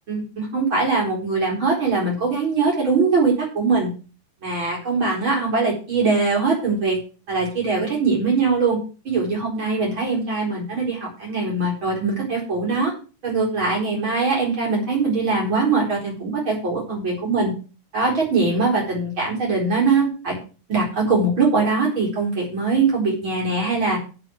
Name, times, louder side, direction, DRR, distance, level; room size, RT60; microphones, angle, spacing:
voice 1, 0.1-3.9 4.4-7.0 7.3-8.8 9.0-12.9 13.2-17.5 17.9-20.4 20.7-24.0, right 4 dB, 40° right, -2 dB, 4.9 m, -22 dB
8.3 x 6.9 x 7.7 m, 0.36 s
omnidirectional pair, 3.5 m